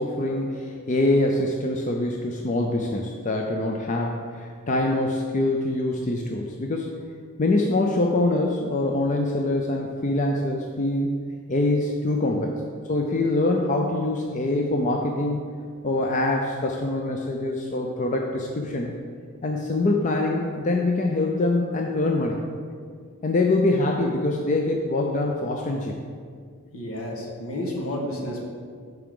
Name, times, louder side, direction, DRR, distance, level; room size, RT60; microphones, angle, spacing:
voice 1, 0.0-6.9 7.4-11.1 11.5-12.6 12.8-15.5 15.8-18.9 19.4-22.4 23.2-26.0, left 2 dB, 35° left, 1 dB, 0.5 m, -24 dB
voice 2, 26.7-28.5, left 1 dB, 70° left, -1 dB, 1.5 m, -31 dB
12.0 x 4.7 x 3.7 m, 2.1 s
head